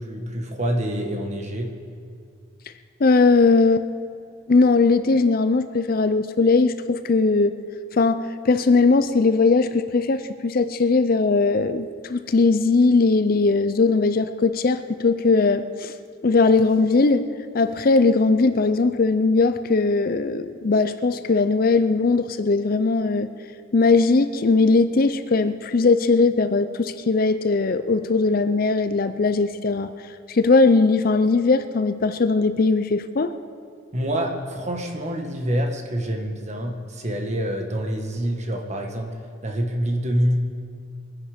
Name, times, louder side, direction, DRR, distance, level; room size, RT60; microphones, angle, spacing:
voice 1, 0.0-1.7 33.9-40.4, equal, 35° right, 3 dB, 1.5 m, -26 dB
voice 2, 3.0-3.9 4.5-7.5 7.9-15.9 16.2-23.3 23.7-29.9 30.3-33.4, left 3 dB, 45° left, 11 dB, 0.5 m, -19 dB
22.5 x 10.5 x 5.1 m, 2.4 s
head